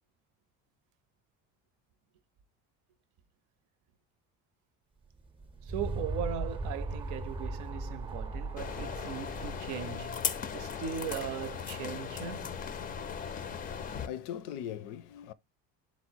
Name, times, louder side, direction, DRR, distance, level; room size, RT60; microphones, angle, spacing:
sound 1, 5.2-10.8, right 2 dB, 15° right, 0.6 m, -38 dB
voice 1, 5.6-12.6, right 9 dB, 75° right, 0.6 m, -39 dB
sound 2, 8.6-14.1, left 7 dB, 30° left, 0.4 m, -37 dB
voice 2, 13.5-15.3, left 10 dB, 80° left, 0.6 m, -41 dB
4.3 x 2.0 x 4.4 m
cardioid pair, 120°, 30 cm